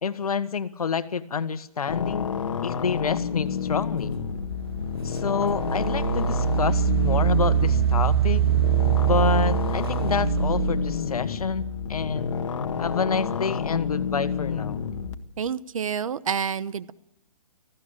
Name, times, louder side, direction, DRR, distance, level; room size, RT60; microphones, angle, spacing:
voice 1, 0.0-2.3 2.6-4.1 5.0-8.4 9.0-12.3 12.8-14.8, left 6 dB, 85° left, 12 dB, 1.5 m, -28 dB
sound 1, 1.9-15.1, left 6 dB, 55° left, 1.8 m, -29 dB
Engine, 4.4-4.5 5.1-11.0, right 11 dB, 40° right, 0.7 m, -23 dB
voice 2, 15.4-16.9, right 7 dB, 65° right, 17 dB, 1.0 m, -28 dB
19.0 x 15.5 x 8.9 m, 0.79 s
hypercardioid pair, 170°, 19 cm